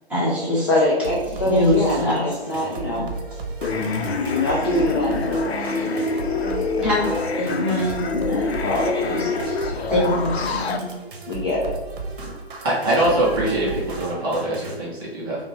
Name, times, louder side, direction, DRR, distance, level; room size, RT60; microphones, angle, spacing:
voice 1, 0.1-0.7 1.5-2.2 2.9-3.0 6.8-7.1 7.3-8.1 9.0-9.3 9.9-10.8, left 1 dB, 5° right, -9 dB, 1.0 m, -23 dB
voice 2, 0.7-3.1 4.3-5.8 6.3-6.9 8.3-9.7 11.3-11.7 12.2-12.3, left 1 dB, 25° left, -5 dB, 0.4 m, -25 dB
sound 1, 1.0-14.7, right 3 dB, 55° right, 0.8 m, -35 dB
sound 2, 3.6-10.8, left 3 dB, 75° left, 0.6 m, -26 dB
voice 3, 12.6-15.4, right 1 dB, 20° right, -6 dB, 0.6 m, -23 dB
4.9 x 2.1 x 3.1 m, 1.1 s
figure-of-eight pair, 135°, 32 cm